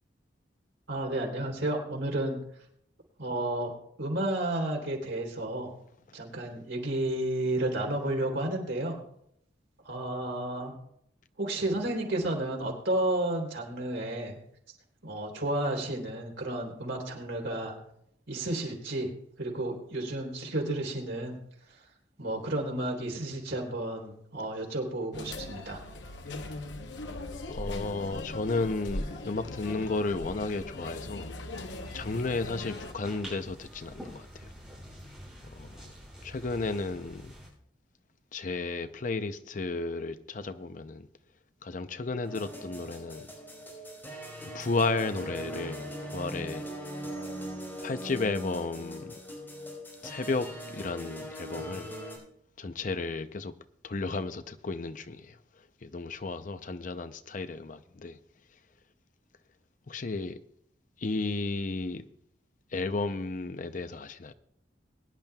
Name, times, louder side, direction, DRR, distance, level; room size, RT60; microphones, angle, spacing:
voice 1, 0.9-2.4 3.2-3.7 4.0-5.7 6.1-9.0 9.8-10.7 11.4-14.4 15.0-17.7 18.3-19.1 19.4-21.4 22.2-25.8, right 1 dB, 85° right, 3.4 m, -32 dB
sound 1, 25.1-32.9, left 2 dB, 75° left, 0.9 m, -39 dB
voice 2, 27.5-31.7 31.9-34.5 35.5-35.9 36.2-37.3 38.3-41.1 41.6-43.3 44.4-46.7 47.8-49.2 50.0-51.9 52.6-53.5 53.8-55.4 55.8-58.2 59.9-60.4 61.0-62.1 62.7-64.3, left 3 dB, 45° left, 0.6 m, -33 dB
sound 2, 31.5-37.5, equal, 5° right, 5.3 m, -47 dB
sound 3, 42.2-52.2, equal, 10° left, 4.5 m, -40 dB
22.0 x 10.5 x 2.3 m
head